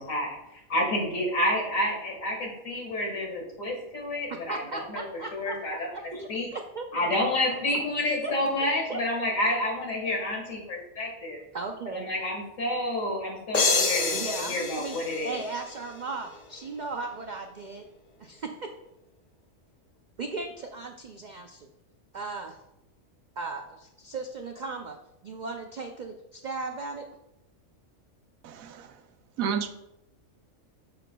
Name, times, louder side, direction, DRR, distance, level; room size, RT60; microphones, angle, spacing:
voice 1, 0.0-5.0 5.3-5.9 6.3-6.5 6.9-11.4 11.9-14.2 14.5-15.4, left 1 dB, 70° left, 0 dB, 2.1 m, -29 dB
voice 2, 4.3-5.8 6.1-7.0 8.2-8.3 8.9-9.0 11.5-12.1 14.1-15.0 15.2-17.8 18.2-18.7 20.2-21.7 22.1-22.6 23.4-25.0 25.2-27.1, right 3 dB, 65° right, 4 dB, 0.4 m, -36 dB
sound 1, 13.5-16.2, left 4 dB, 40° left, 0.6 m, -28 dB
voice 3, 28.4-29.0 29.4-29.7, right 7 dB, 80° right, 8 dB, 1.1 m, -31 dB
8.8 x 6.7 x 2.2 m, 0.88 s
omnidirectional pair, 1.4 m